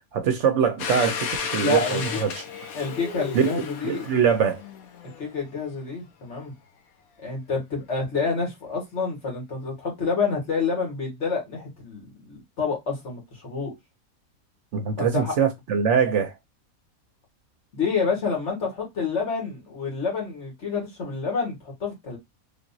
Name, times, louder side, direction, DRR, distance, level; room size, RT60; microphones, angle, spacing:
voice 1, 0.1-2.4 3.3-4.6 14.7-16.3, right 7 dB, 65° right, 0.8 m, -23 dB
Domestic sounds home sounds, 0.8-5.4, left 6 dB, 85° left, 1.2 m, -33 dB
voice 2, 1.6-2.2 2.7-4.1 5.2-6.5 7.2-13.7 15.0-15.3 17.7-22.2, left 4 dB, 55° left, 1.8 m, -28 dB
3.5 x 2.9 x 2.6 m
omnidirectional pair, 1.5 m